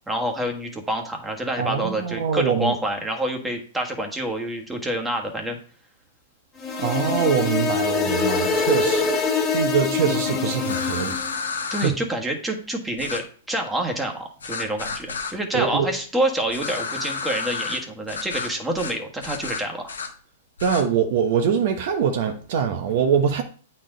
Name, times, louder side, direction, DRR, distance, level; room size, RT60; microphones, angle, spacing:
voice 1, 0.1-5.6 11.7-19.9, right 1 dB, 10° right, 1.5 m, -27 dB
voice 2, 1.6-2.8 6.8-9.1 9.5-11.2 11.8-11.9 15.5-15.9 20.6-23.4, right 7 dB, 60° right, 1.0 m, -23 dB
sound 1, 6.6-11.4, left 5 dB, 20° left, 1.7 m, -24 dB
sound 2, 10.6-11.9 13.0-13.2 14.4-15.3 16.5-17.8 18.1-18.5 18.8-18.9 19.2-20.1 20.6-20.8, left 5 dB, 90° left, 1.2 m, -31 dB
8.4 x 4.4 x 3.9 m
hypercardioid pair, 120°, 0 cm